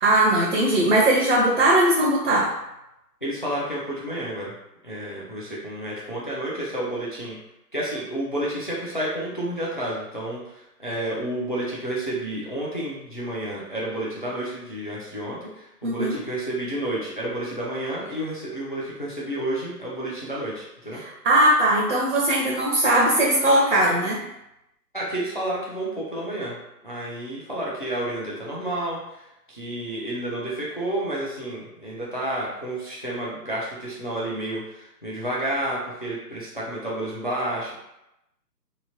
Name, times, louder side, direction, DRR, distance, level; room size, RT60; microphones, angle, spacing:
voice 1, 0.0-2.5 15.8-16.2 21.0-24.2, right 1 dB, 50° right, -4 dB, 0.6 m, -20 dB
voice 2, 3.2-4.5 4.8-7.4 7.7-10.4 10.8-21.0 24.9-26.6 26.8-29.2 29.5-37.7, right 1 dB, 35° left, -6 dB, 0.4 m, -30 dB
2.8 x 2.1 x 2.8 m, 0.88 s
hypercardioid pair, 160°, 48 cm